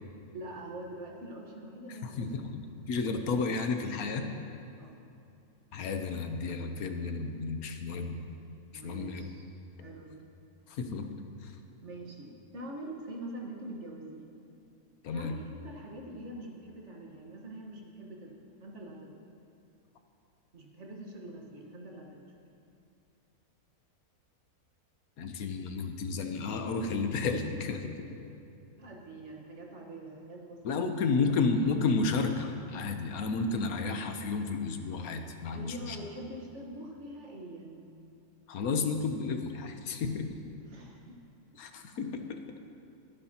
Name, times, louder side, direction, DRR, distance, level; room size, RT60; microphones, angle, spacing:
voice 1, 0.3-2.4 4.8-5.0 8.7-9.5 9.8-10.2 11.8-14.4 15.1-19.1 20.5-22.3 28.8-30.9 35.5-37.9 40.6-41.2, right 1 dB, 50° right, -1 dB, 1.6 m, -44 dB
voice 2, 2.0-2.6 2.9-4.2 5.7-8.2 8.8-9.2 10.7-11.1 11.4-11.5 15.0-15.3 25.2-27.9 30.6-36.0 38.5-40.4 41.6-42.4, left 4 dB, 75° left, 6 dB, 1.3 m, -32 dB
22.0 x 9.8 x 2.9 m, 2.7 s
omnidirectional pair, 1.6 m